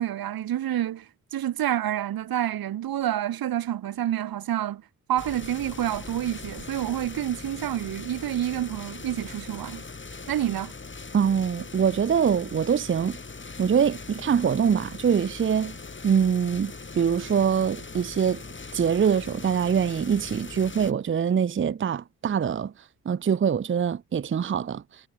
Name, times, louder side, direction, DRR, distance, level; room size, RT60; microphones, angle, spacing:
voice 1, 0.0-4.8 5.1-9.8 10.3-10.7, right 12 dB, 85° right, 1.8 m, -28 dB
sound 1, 5.2-20.9, left 4 dB, 35° left, 4.6 m, -41 dB
voice 2, 11.1-13.2 13.6-15.7 16.0-18.4 18.7-22.7 23.1-24.8, right 7 dB, 35° right, 0.6 m, -24 dB
cardioid pair, 65°, 35 cm